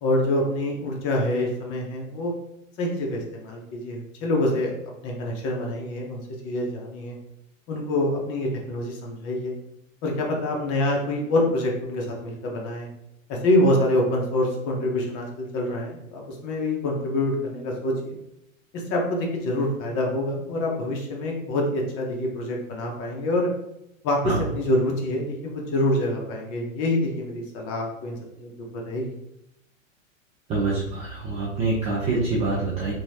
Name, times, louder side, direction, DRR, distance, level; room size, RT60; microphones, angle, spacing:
voice 1, 0.0-2.3 2.8-4.7 5.0-7.2 7.7-9.5 10.0-12.9 13.3-18.2 18.7-23.5 24.0-28.5 28.8-29.1, left 1 dB, 35° left, 0 dB, 0.9 m, -26 dB
voice 2, 30.5-32.9, right 3 dB, 20° right, -6 dB, 0.3 m, -25 dB
2.9 x 2.3 x 2.7 m, 0.81 s
hypercardioid pair, 115°, 40 cm